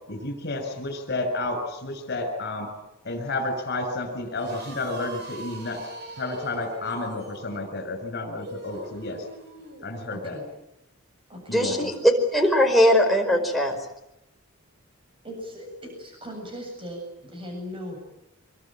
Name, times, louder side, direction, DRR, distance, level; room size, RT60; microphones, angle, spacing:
voice 1, 0.1-2.7 3.0-5.8 6.2-9.2 9.8-10.4 11.5-11.7, left 2 dB, 50° left, 7 dB, 6.8 m, -31 dB
sound 1, 4.4-9.9, right 2 dB, 50° right, 6.0 m, -42 dB
voice 2, 10.1-10.4 11.3-11.6 15.2-18.0, equal, 25° right, 2 dB, 7.8 m, -38 dB
voice 3, 11.5-13.8, equal, ahead, 1 dB, 4.9 m, -20 dB
26.0 x 24.0 x 9.0 m, 0.85 s
head